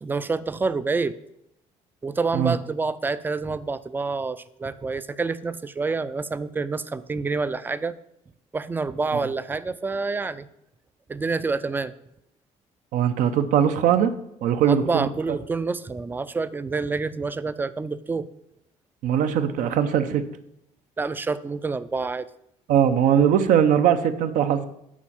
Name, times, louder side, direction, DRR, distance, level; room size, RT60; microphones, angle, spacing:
voice 1, 0.0-1.2 2.0-7.9 8.5-10.5 11.1-11.9 14.6-18.3 21.0-22.3, right 4 dB, 15° right, 14 dB, 0.3 m, -27 dB
voice 2, 12.9-14.1 14.4-15.1 19.0-20.2 22.7-24.7, right 9 dB, 70° right, 10 dB, 0.6 m, -20 dB
7.3 x 4.3 x 5.5 m, 0.80 s
cardioid pair, 95°, 14 cm